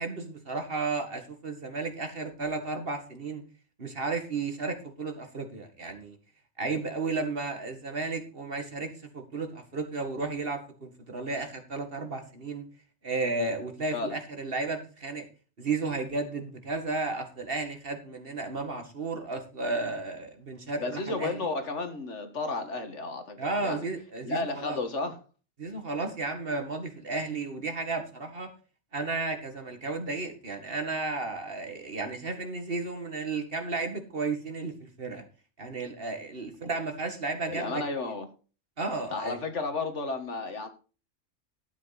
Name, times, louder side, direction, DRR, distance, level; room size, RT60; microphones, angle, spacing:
voice 1, 0.0-3.4 3.8-6.2 6.6-12.6 13.0-15.2 15.6-21.3 23.4-24.8 25.6-28.5 28.9-35.2 35.6-37.8 38.8-39.4, right 3 dB, 45° right, 2.0 m, -33 dB
voice 2, 20.8-23.9 24.2-25.2 37.5-38.3 39.1-40.7, left 3 dB, 60° left, 2.0 m, -33 dB
12.0 x 8.5 x 4.1 m
omnidirectional pair, 1.4 m